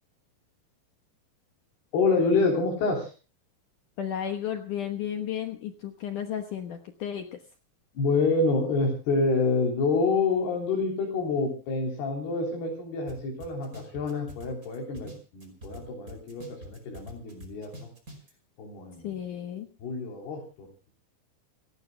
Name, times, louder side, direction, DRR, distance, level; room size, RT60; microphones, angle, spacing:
voice 1, 1.9-3.1 7.9-17.9 18.6-19.2 19.8-20.9, left 3 dB, 90° left, 0 dB, 5.5 m, -27 dB
voice 2, 4.0-7.4 19.0-19.7, left 9 dB, 65° left, 6 dB, 2.4 m, -33 dB
sound 1, 13.1-13.2 13.4-15.8 16.1-18.3, right 1 dB, 20° right, 5.2 m, -44 dB
29.5 x 15.0 x 2.2 m, 0.35 s
omnidirectional pair, 4.4 m